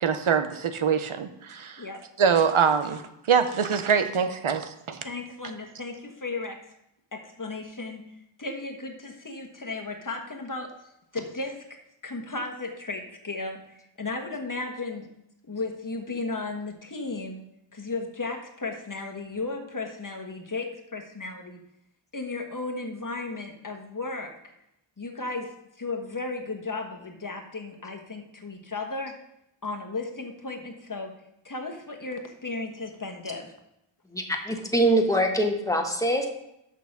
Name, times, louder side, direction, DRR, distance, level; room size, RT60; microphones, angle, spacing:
voice 1, 0.0-1.8 2.2-3.0 3.3-5.0, right 6 dB, 80° right, 9 dB, 0.8 m, -24 dB
voice 2, 5.0-6.6 7.1-8.0 8.4-10.7 11.1-11.6 12.0-15.1 15.5-17.4 17.7-21.6 22.1-24.5 25.0-25.5 25.8-29.1 29.6-31.1 31.4-33.5, left 3 dB, 40° left, 3 dB, 1.3 m, -35 dB
voice 3, 34.1-36.3, right 1 dB, 5° left, 3 dB, 1.4 m, -24 dB
6.5 x 6.0 x 5.9 m, 0.82 s
wide cardioid pair, 50°, 49 cm